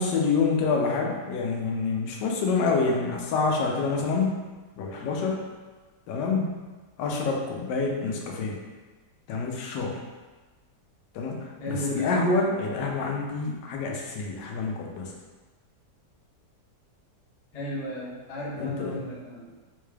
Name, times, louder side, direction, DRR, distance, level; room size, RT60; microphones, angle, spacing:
voice 1, 0.0-4.4 4.8-5.4 6.1-6.5 7.0-8.6 9.3-10.0 11.1-15.1 18.6-19.0, left 4 dB, 80° left, 0 dB, 1.2 m, -27 dB
voice 2, 11.6-12.2 17.5-19.5, left 1 dB, 50° left, -6 dB, 0.4 m, -33 dB
3.8 x 2.2 x 3.2 m, 1.3 s
omnidirectional pair, 1.8 m